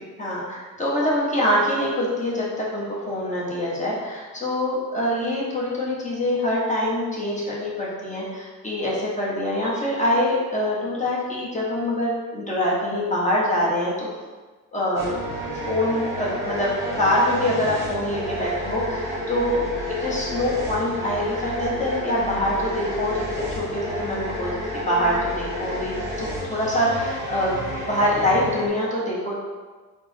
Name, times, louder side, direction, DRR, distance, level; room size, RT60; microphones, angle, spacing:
voice 1, 0.2-14.1 14.7-15.1 15.7-19.6 20.0-29.4, left 1 dB, 20° left, -5 dB, 0.9 m, -24 dB
sound 1, 15.0-28.7, equal, 10° right, 1.1 m, -31 dB
3.3 x 2.1 x 3.2 m, 1.3 s
cardioid pair, 85°, 36 cm